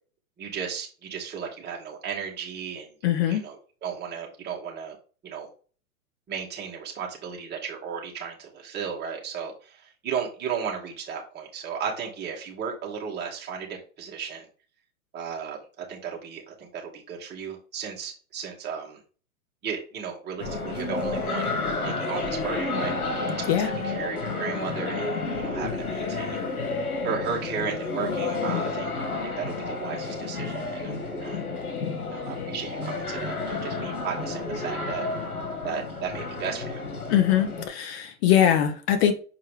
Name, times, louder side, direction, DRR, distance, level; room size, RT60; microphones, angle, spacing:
voice 1, 0.4-2.9 3.3-3.5 3.8-5.0 5.2-5.5 6.3-14.5 15.1-19.0 19.6-21.5 21.8-22.9 23.4-26.4 27.0-28.9 29.2-31.4 32.0-35.1 35.6-36.8, right 7 dB, 25° right, 2.4 m, -35 dB
voice 2, 3.0-3.4 23.5-23.7 37.1-39.1, left 10 dB, 45° left, 1.6 m, -22 dB
sound 1, 20.4-37.7, left 3 dB, 85° left, 2.4 m, -31 dB
6.2 x 4.7 x 3.6 m
hypercardioid pair, 120°, 43 cm